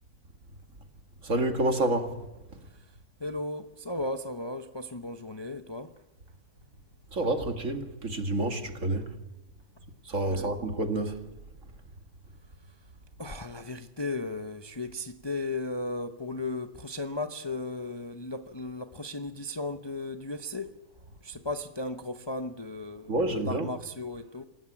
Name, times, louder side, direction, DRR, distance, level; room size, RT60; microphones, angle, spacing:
voice 1, 1.2-2.2 7.1-9.1 10.1-11.2 23.1-23.7, right 2 dB, 55° right, 2.4 m, -28 dB
voice 2, 3.2-5.9 10.3-10.5 13.2-20.7 21.2-23.1 23.5-24.5, left 2 dB, 20° left, 0.7 m, -35 dB
27.0 x 17.0 x 8.7 m
omnidirectional pair, 1.6 m